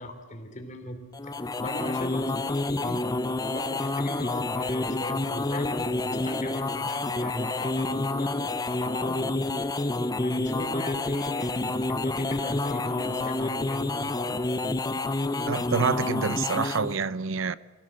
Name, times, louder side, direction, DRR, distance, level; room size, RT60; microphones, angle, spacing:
voice 1, 0.0-1.3 1.6-3.2 3.5-9.5 10.2-14.3, left 1 dB, 40° left, 3.2 m, -39 dB
sound 1, 1.1-17.0, left 2 dB, 20° left, 0.6 m, -28 dB
voice 2, 15.5-17.6, right 5 dB, 80° right, 0.7 m, -27 dB
25.0 x 16.0 x 7.7 m
head